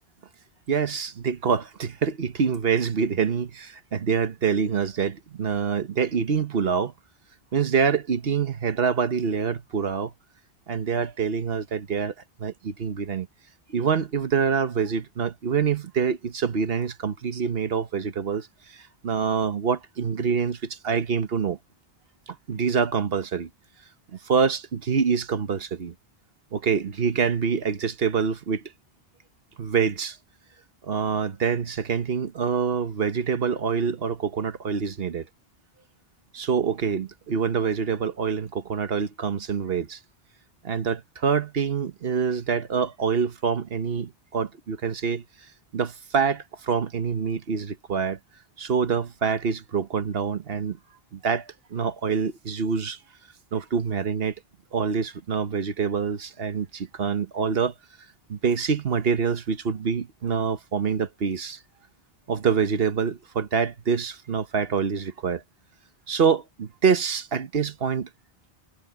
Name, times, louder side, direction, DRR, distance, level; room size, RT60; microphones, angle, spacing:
voice 1, 0.7-6.9 7.5-10.1 10.7-12.1 12.4-13.3 13.7-21.6 22.3-23.5 24.1-25.9 26.5-28.6 29.6-30.2 30.8-35.3 36.3-40.0 40.6-45.2 45.7-48.2 48.6-50.8 51.1-53.0 53.5-54.3 54.7-57.7 58.3-61.6 62.3-65.4 66.1-68.1, right 6 dB, 70° right, 1.3 m, -26 dB
omnidirectional pair, 1.1 m